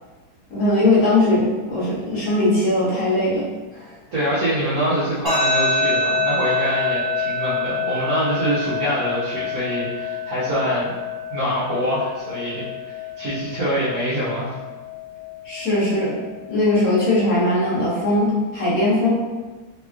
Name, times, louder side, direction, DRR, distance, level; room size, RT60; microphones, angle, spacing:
voice 1, 0.5-3.4 3.7-3.8 15.4-16.2 16.5-19.1, left 2 dB, 55° left, -8 dB, 1.3 m, -19 dB
voice 2, 4.1-10.9 11.3-14.6, equal, 60° right, -11 dB, 1.2 m, -24 dB
sound 1, 5.3-18.2, left 2 dB, 35° left, 0.6 m, -27 dB
3.4 x 3.0 x 2.4 m, 1.3 s
omnidirectional pair, 2.0 m